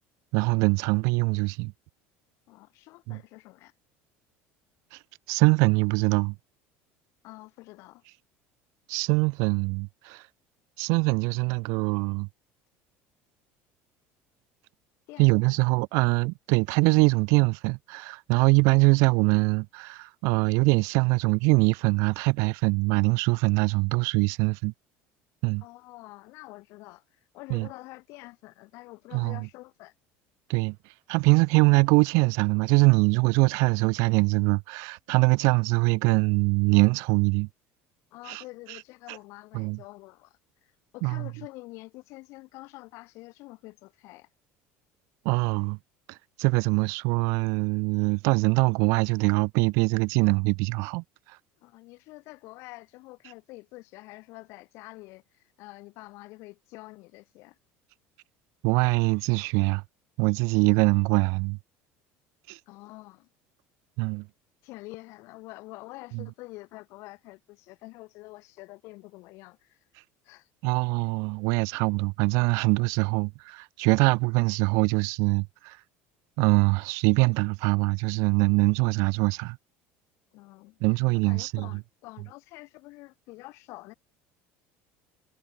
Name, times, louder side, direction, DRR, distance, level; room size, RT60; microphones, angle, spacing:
voice 1, 0.3-1.7 3.1-3.2 4.9-5.0 5.3-6.4 8.9-10.2 10.8-12.3 15.2-24.7 25.4-25.6 27.5-27.7 29.1-29.5 30.5-30.8 31.1-37.5 38.3-38.4 39.5-39.8 41.0-41.3 45.2-45.8 46.1-51.0 58.6-59.8 60.2-61.6 62.5-62.6 64.0-64.3 66.1-66.3 70.6-75.8 76.4-79.6 80.8-81.7, right 30 dB, 65° right, 0.7 m, -23 dB
voice 2, 2.5-3.7 7.2-8.0 15.1-15.6 25.6-29.9 38.1-44.3 51.6-57.6 62.7-63.3 64.6-69.8 70.2-70.5 80.3-80.8 81.2-83.9, left 22 dB, 55° left, 4.3 m, -47 dB
cardioid pair, 170°, 6 cm